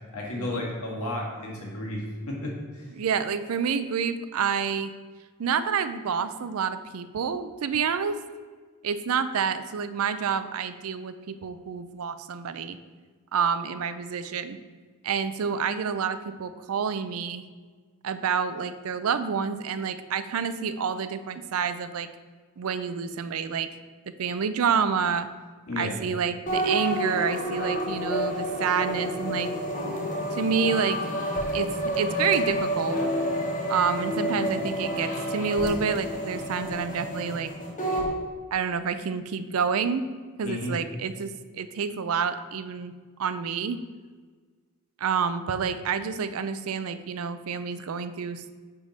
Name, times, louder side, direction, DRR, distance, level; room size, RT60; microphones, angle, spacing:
voice 1, 0.1-2.9 25.7-26.0 40.4-40.8, left 1 dB, 85° left, -2 dB, 1.7 m, -33 dB
voice 2, 3.0-4.9 5.4-8.2 8.8-12.8 13.3-14.6 15.0-17.4 18.0-22.1 22.6-23.7 24.2-25.3 25.8-29.5 30.3-31.0 31.5-33.0 33.7-37.5 38.5-40.1 40.4-42.9 43.2-43.8 45.0-48.6, right 6 dB, 75° right, 12 dB, 0.4 m, -28 dB
sound 1, 26.5-38.1, equal, 35° left, 1.4 m, -29 dB
9.9 x 3.5 x 4.1 m, 1.5 s
head